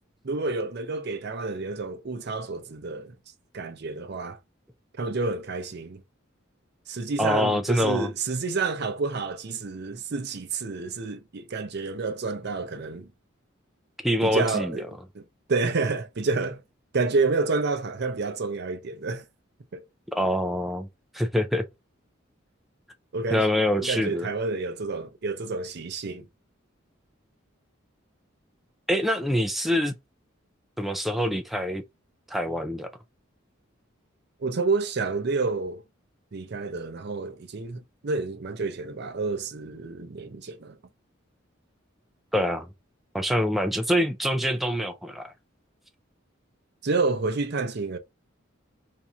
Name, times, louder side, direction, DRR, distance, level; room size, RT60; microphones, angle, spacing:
voice 1, 0.2-3.1 3.5-4.4 5.0-6.0 6.9-13.1 14.2-14.8 15.1-15.2 15.5-16.6 16.9-19.2 19.7-19.8 23.1-23.4 23.8-26.3 34.4-35.8 36.3-40.8 46.8-48.0, right 3 dB, 55° right, 0.6 m, -29 dB
voice 2, 7.2-8.1 14.0-14.8 20.1-20.9 21.1-21.6 23.3-24.3 28.9-29.9 30.8-31.8 32.3-32.9 42.3-42.7 43.1-45.3, equal, ahead, 0.3 m, -25 dB
2.7 x 2.4 x 4.0 m
head